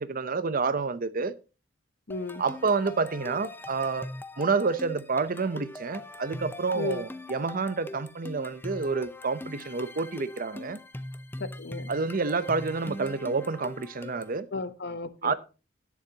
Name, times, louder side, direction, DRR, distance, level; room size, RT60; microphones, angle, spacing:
voice 1, 0.0-1.3 2.4-4.1 4.4-10.8 11.9-14.5 15.2-15.3, right 4 dB, 45° right, 0.7 m, -29 dB
voice 2, 2.1-2.4 6.7-7.1 11.4-11.9 14.5-15.3, left 3 dB, 60° left, 0.9 m, -34 dB
sound 1, 2.1-14.4, left 1 dB, 10° left, 0.6 m, -42 dB
18.5 x 7.2 x 2.8 m
head